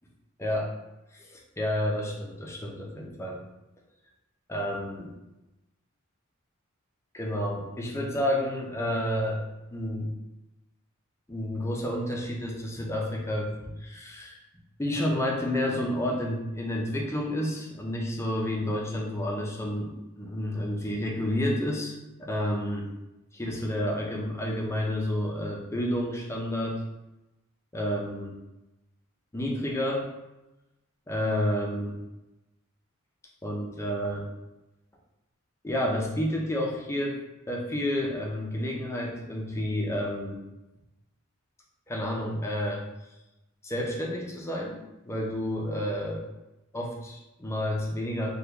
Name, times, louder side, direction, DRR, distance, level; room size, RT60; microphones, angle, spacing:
voice 1, 0.4-0.7 1.1-3.4 4.5-5.1 7.1-9.4 9.7-10.1 11.3-14.4 14.8-22.8 23.3-26.8 27.7-28.4 29.3-30.0 31.1-32.0 33.4-34.3 35.6-37.2 37.5-40.4 41.9-42.8 43.6-44.8 45.0-46.3 46.7-48.3, left 1 dB, 15° left, -1 dB, 0.5 m, -30 dB
2.9 x 2.2 x 3.5 m, 0.98 s
head